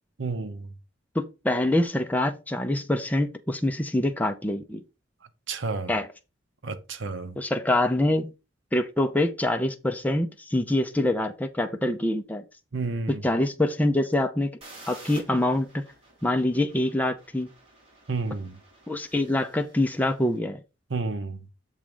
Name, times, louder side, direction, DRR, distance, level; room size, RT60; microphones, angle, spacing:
voice 1, 0.2-0.7 5.5-6.0 6.6-7.4 12.7-13.2 18.1-18.6 20.9-21.5, right 3 dB, 70° right, 0.9 m, -31 dB
voice 2, 1.1-4.8 5.9-6.1 7.4-8.3 8.7-12.4 13.2-14.5 14.9-15.8 16.2-17.5 18.9-20.6, left 1 dB, 10° left, 0.6 m, -25 dB
sound 1, 14.6-20.3, right 2 dB, 30° right, 3.2 m, -51 dB
7.3 x 3.6 x 5.1 m
head